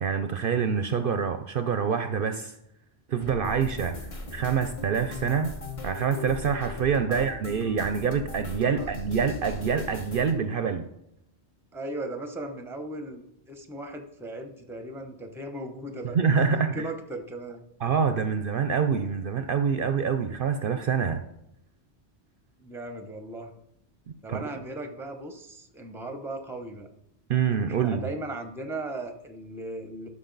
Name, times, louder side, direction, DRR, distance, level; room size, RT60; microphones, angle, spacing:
voice 1, 0.0-2.5 3.1-4.0 4.3-5.5 5.8-10.9 16.1-16.9 17.8-21.2 24.3-24.7 27.3-28.1, right 6 dB, 60° right, 9 dB, 0.7 m, -26 dB
sound 1, 3.2-10.3, left 1 dB, 30° left, 1.0 m, -39 dB
voice 2, 6.9-7.4 8.7-8.9 11.7-16.2 16.5-17.7 22.6-23.5 24.2-26.9 27.7-30.1, right 2 dB, 5° right, 6 dB, 0.7 m, -37 dB
11.5 x 6.1 x 3.9 m, 0.80 s
omnidirectional pair, 1.2 m